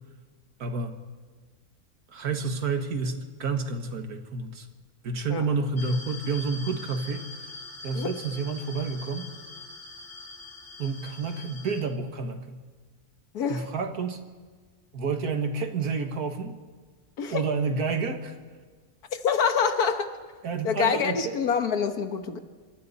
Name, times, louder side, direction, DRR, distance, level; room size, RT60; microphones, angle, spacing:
voice 1, 0.6-0.9 2.1-4.7 5.0-7.3 7.8-9.3 10.8-12.6 13.5-14.2 14.9-16.6 17.3-18.4 20.4-21.3, right 4 dB, 80° right, 6 dB, 2.0 m, -29 dB
sound 1, 5.8-11.8, left 2 dB, 40° left, 2.3 m, -43 dB
voice 2, 13.3-13.7 17.2-17.4 19.1-20.1 20.6-22.4, left 6 dB, 90° left, 7 dB, 1.8 m, -26 dB
26.0 x 24.0 x 4.2 m, 1.5 s
omnidirectional pair, 1.6 m